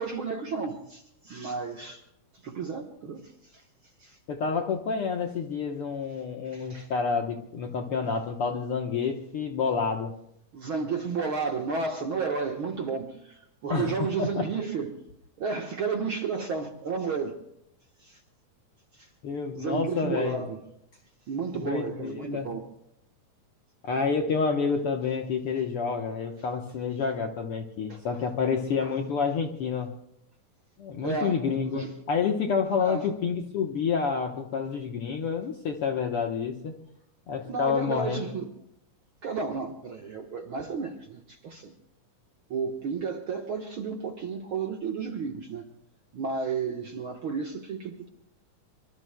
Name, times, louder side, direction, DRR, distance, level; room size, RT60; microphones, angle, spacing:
voice 1, 0.0-2.0 2.4-3.6 4.0-4.2 6.4-6.9 10.5-15.0 15.4-17.4 18.0-18.2 18.9-19.1 19.5-20.6 21.3-22.7 27.9-28.2 28.8-28.9 31.0-31.4 31.7-31.9 32.8-33.1 37.4-38.5 39.2-41.7 42.5-45.7 46.1-48.1, right 5 dB, 55° right, 3 dB, 1.5 m, -32 dB
voice 2, 4.3-10.1 13.7-14.5 19.2-20.4 21.5-22.5 23.8-29.9 30.8-36.8 37.3-38.3, left 5 dB, 60° left, 3 dB, 1.5 m, -29 dB
25.0 x 24.5 x 2.2 m, 0.75 s
omnidirectional pair, 3.7 m